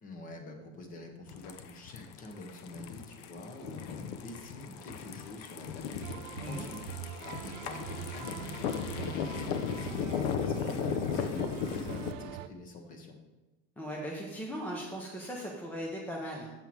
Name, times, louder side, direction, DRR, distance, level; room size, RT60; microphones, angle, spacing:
voice 1, 0.0-6.8 7.2-13.2, left 2 dB, 25° left, 4 dB, 0.8 m, -46 dB
sound 1, 1.3-12.1, left 8 dB, 75° left, 0.7 m, -36 dB
sound 2, 6.0-12.5, right 12 dB, 90° right, 0.5 m, -43 dB
voice 2, 13.8-16.5, equal, 5° left, -2 dB, 0.4 m, -38 dB
7.3 x 5.6 x 4.5 m, 1.1 s
cardioid pair, 165°, 36 cm